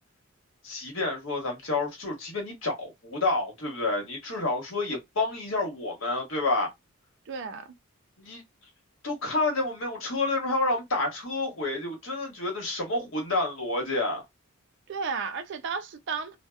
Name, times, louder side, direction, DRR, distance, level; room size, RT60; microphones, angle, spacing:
voice 1, 0.6-6.7 8.2-8.4 9.0-14.2, left 2 dB, 60° left, 1.1 m, -29 dB
voice 2, 7.3-7.7 14.9-16.4, right 5 dB, 55° right, 0.3 m, -33 dB
2.7 x 2.0 x 2.3 m
head